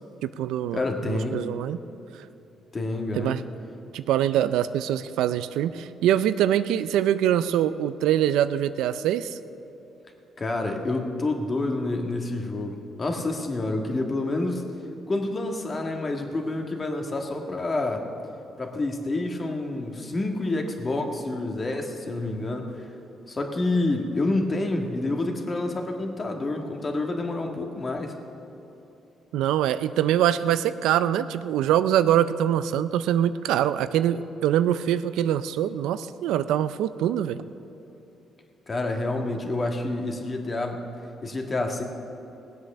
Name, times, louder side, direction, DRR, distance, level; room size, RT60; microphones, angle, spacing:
voice 1, 0.2-1.8 3.2-3.4 3.9-9.4 29.3-37.5, right 11 dB, 90° right, 13 dB, 0.4 m, -24 dB
voice 2, 0.7-1.4 2.7-3.4 10.4-14.6 15.1-18.1 18.6-22.9 23.3-28.2 38.7-40.9 41.2-41.8, left 2 dB, 35° left, 3 dB, 1.6 m, -28 dB
18.0 x 8.0 x 6.6 m, 2.9 s
cardioid pair, 90°, 0 cm